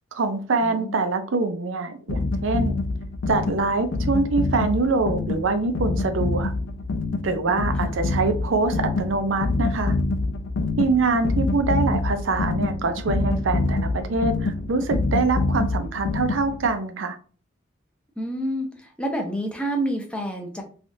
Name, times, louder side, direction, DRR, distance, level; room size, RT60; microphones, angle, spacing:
voice 1, 0.1-2.8 3.3-6.5 7.2-10.0 10.8-17.2, right 3 dB, 75° right, 8 dB, 0.5 m, -24 dB
voice 2, 0.6-1.0 7.8-8.0 18.2-20.6, right 1 dB, 5° left, 2 dB, 0.6 m, -29 dB
sound 1, 2.1-16.7, left 2 dB, 70° left, 0.4 m, -26 dB
3.3 x 2.3 x 2.6 m, 0.40 s
head